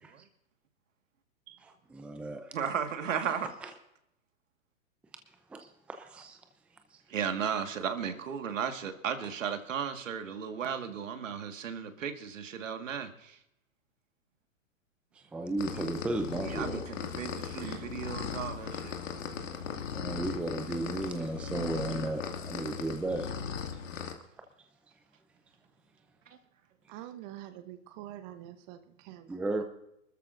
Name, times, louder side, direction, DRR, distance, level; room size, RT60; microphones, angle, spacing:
voice 1, 1.9-2.5 3.6-3.7 5.5-6.4 15.2-16.8 19.9-23.3 29.3-29.6, right 2 dB, 5° right, 6 dB, 0.6 m, -34 dB
voice 2, 2.5-3.5 7.1-13.4 16.4-19.0, right 7 dB, 70° right, 7 dB, 1.8 m, -35 dB
sound 1, 15.6-24.1, left 6 dB, 70° left, 2.3 m, -38 dB
voice 3, 26.9-29.4, right 13 dB, 35° right, 9 dB, 0.9 m, -46 dB
24.5 x 13.5 x 2.6 m, 0.81 s
hypercardioid pair, 125°, 40 cm